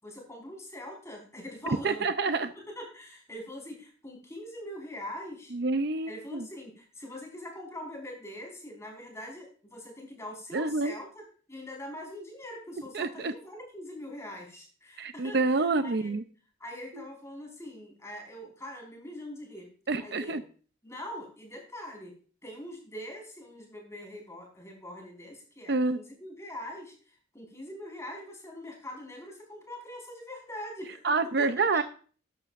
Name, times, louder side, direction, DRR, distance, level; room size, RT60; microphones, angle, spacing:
voice 1, 0.0-2.1 2.5-5.5 6.1-11.2 11.5-16.1 16.6-19.7 20.0-20.4 20.8-22.1 22.4-31.0 31.4-31.8, left 1 dB, 15° left, 1 dB, 4.8 m, -43 dB
voice 2, 1.7-2.5 5.5-6.5 10.5-11.0 12.9-13.3 15.0-16.2 16.9-17.0 19.9-20.4 25.7-26.0 31.0-31.8, right 3 dB, 55° right, 10 dB, 0.6 m, -27 dB
13.5 x 11.0 x 2.5 m, 0.40 s
head